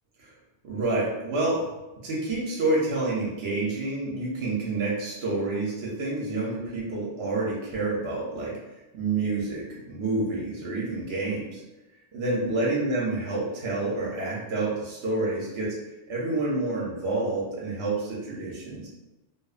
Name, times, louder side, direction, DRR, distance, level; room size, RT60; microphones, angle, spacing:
voice 1, 0.6-1.7 2.0-8.6 8.9-11.6 12.1-15.7 16.1-18.9, right 2 dB, 70° right, -4 dB, 0.8 m, -28 dB
2.7 x 2.0 x 2.4 m, 1.0 s
omnidirectional pair, 1.2 m